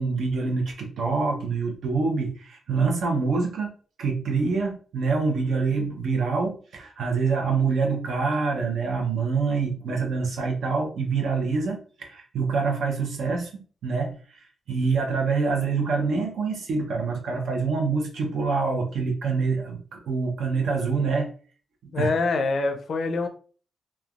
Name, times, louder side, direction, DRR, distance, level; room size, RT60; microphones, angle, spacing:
voice 1, 0.0-3.7 4.0-13.5 13.8-21.3 21.8-22.1, right 4 dB, 75° right, 1 dB, 0.8 m, -26 dB
voice 2, 21.9-23.3, left 3 dB, 55° left, 7 dB, 0.4 m, -25 dB
3.2 x 2.3 x 2.4 m, 0.40 s
wide cardioid pair, 135°, 0 cm